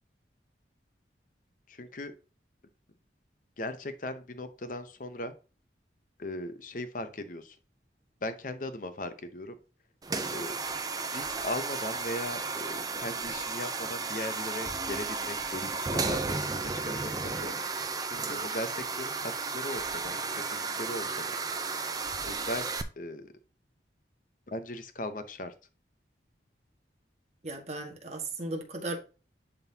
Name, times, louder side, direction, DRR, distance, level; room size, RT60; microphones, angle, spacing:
voice 1, 1.7-2.1 3.6-5.3 6.2-7.6 8.2-9.6 10.3-10.6 11.1-17.1 17.4-17.8 18.1-21.4 22.2-22.7 23.0-23.3 24.5-25.5, left 1 dB, 45° left, 0.8 m, -38 dB
sound 1, 10.0-22.8, right 4 dB, 20° right, 0.5 m, -33 dB
voice 2, 27.4-29.0, right 2 dB, 35° right, 1.5 m, -36 dB
10.5 x 3.9 x 2.8 m
head